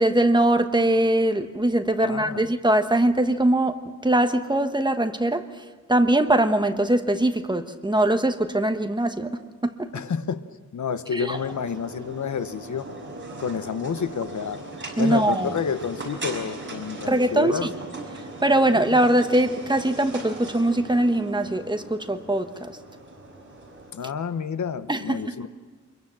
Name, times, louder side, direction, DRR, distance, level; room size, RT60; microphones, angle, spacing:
voice 1, 0.0-3.8 4.0-9.9 11.1-11.4 15.0-15.5 17.1-17.7 18.4-22.7 24.9-25.3, right 1 dB, 15° right, 8 dB, 1.2 m, -22 dB
voice 2, 2.0-2.5 9.9-10.4 10.7-12.9 13.4-14.6 15.0-17.7 23.9-25.5, left 6 dB, 70° left, 12 dB, 1.0 m, -29 dB
sound 1, 11.3-23.9, right 2 dB, 40° right, 5.7 m, -39 dB
25.5 x 22.5 x 7.4 m, 1.5 s
wide cardioid pair, 160°, 30 cm